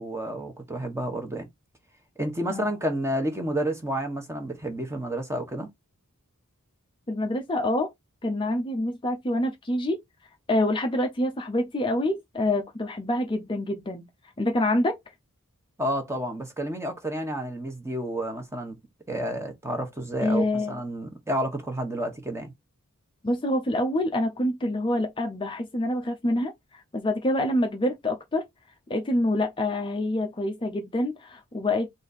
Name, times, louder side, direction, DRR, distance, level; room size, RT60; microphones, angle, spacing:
voice 1, 0.0-1.5 2.2-5.7 15.8-18.8 19.1-22.5, right 1 dB, 10° right, 1.1 m, -30 dB
voice 2, 7.1-7.9 8.2-10.0 10.5-14.1 14.4-15.1 20.2-20.8 23.2-28.5 28.9-31.9, left 1 dB, 20° left, 0.5 m, -26 dB
4.1 x 2.6 x 4.1 m
head